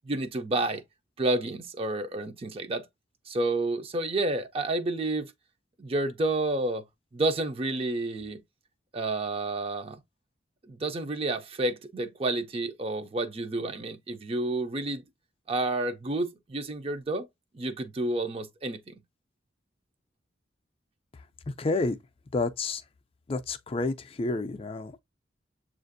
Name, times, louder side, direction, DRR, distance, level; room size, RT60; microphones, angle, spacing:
voice 1, 0.1-0.8 1.2-2.9 3.3-5.3 5.8-6.8 7.1-8.4 8.9-10.0 10.7-15.0 15.5-17.3 17.5-19.0, right 2 dB, 30° right, 0.5 m, -30 dB
voice 2, 21.5-22.0 22.3-22.8 23.3-25.0, left 3 dB, 30° left, 0.4 m, -29 dB
7.1 x 2.5 x 2.6 m
head